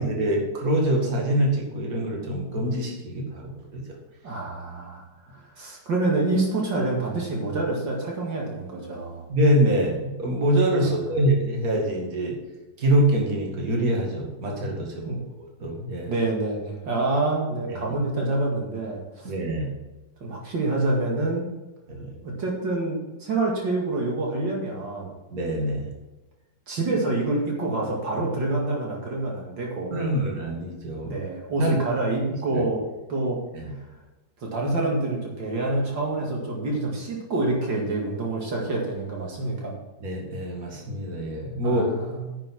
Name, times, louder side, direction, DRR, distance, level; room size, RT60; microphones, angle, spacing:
voice 1, 0.0-3.8 9.3-12.3 12.8-15.1 15.6-16.1 17.7-17.8 19.2-19.7 21.9-22.2 25.3-25.9 29.9-31.1 31.6-31.7 32.5-32.6 33.5-33.7 40.0-41.8, right 1 dB, 50° right, 0 dB, 2.7 m, -25 dB
voice 2, 4.2-5.0 5.3-9.2 10.8-10.9 15.1-15.2 16.0-19.3 20.2-21.4 22.2-25.1 26.7-30.2 31.0-32.8 33.1-33.4 34.4-39.7 41.6-42.2, right 2 dB, 70° right, -1 dB, 2.8 m, -27 dB
9.9 x 7.6 x 6.0 m, 1.1 s
omnidirectional pair, 2.1 m